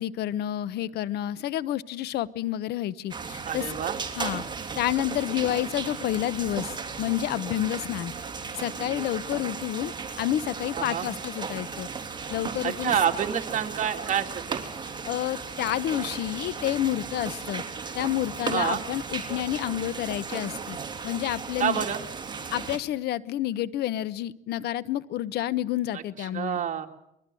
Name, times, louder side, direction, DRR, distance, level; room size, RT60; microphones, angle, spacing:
voice 1, 0.0-3.7 4.2-4.4 4.8-8.1 8.5-11.9 12.3-13.0 15.1-17.6 17.9-20.8 21.0-21.9 22.5-26.6, left 13 dB, 75° left, 18 dB, 1.0 m, -29 dB
sound 1, 3.1-22.8, right 5 dB, 25° right, 3.3 m, -36 dB
voice 2, 3.5-4.0 10.8-11.1 12.6-14.6 18.5-18.8 21.6-22.0 25.9-26.0 26.3-26.9, right 8 dB, 45° right, 5 dB, 2.6 m, -27 dB
24.0 x 21.5 x 7.7 m, 0.79 s
cardioid pair, 110°, 17 cm